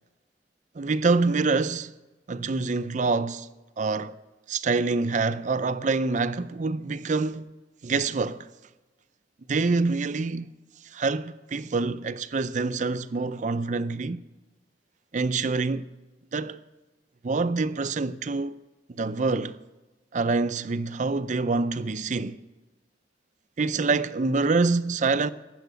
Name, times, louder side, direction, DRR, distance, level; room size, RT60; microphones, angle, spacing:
voice 1, 0.8-1.9 2.3-3.5 3.8-4.2 4.5-7.5 7.8-8.5 9.5-10.5 10.8-14.2 15.1-15.9 16.3-16.6 17.2-18.5 18.9-19.6 20.1-22.4 23.6-25.3, right 3 dB, 40° right, 0.5 m, -26 dB
13.0 x 9.2 x 8.0 m
head